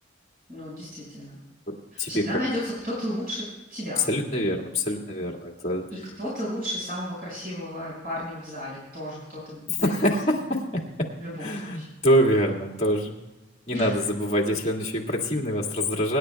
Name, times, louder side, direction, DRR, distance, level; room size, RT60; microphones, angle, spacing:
voice 1, 0.5-1.4 1.9-4.1 5.9-10.1 11.2-11.9 13.7-14.0, equal, 45° right, -6 dB, 5.3 m, -33 dB
voice 2, 1.7-2.2 4.1-5.9 9.8-10.8 11.4-13.2 13.7-16.2, equal, 35° left, 0 dB, 2.0 m, -25 dB
25.0 x 11.0 x 2.3 m, 1.0 s
head